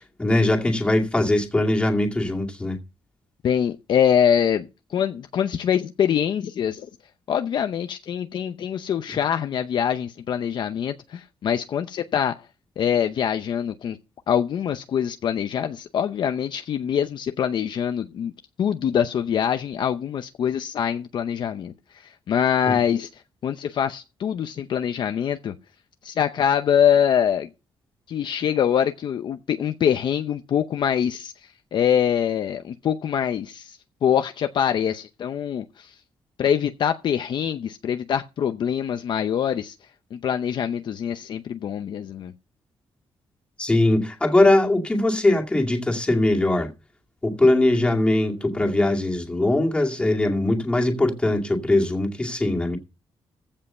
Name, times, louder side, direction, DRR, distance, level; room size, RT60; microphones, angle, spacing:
voice 1, 0.0-2.8 22.6-22.7 43.6-46.7 47.2-52.8, left 2 dB, 10° left, 2.3 m, -21 dB
voice 2, 3.4-6.9 7.3-12.4 12.8-14.0 14.3-18.3 18.6-25.5 26.0-27.5 28.1-35.9 36.4-39.7 40.1-42.3, left 8 dB, 55° left, 0.7 m, -24 dB
15.5 x 5.5 x 5.6 m
cardioid pair, 165°, 10 cm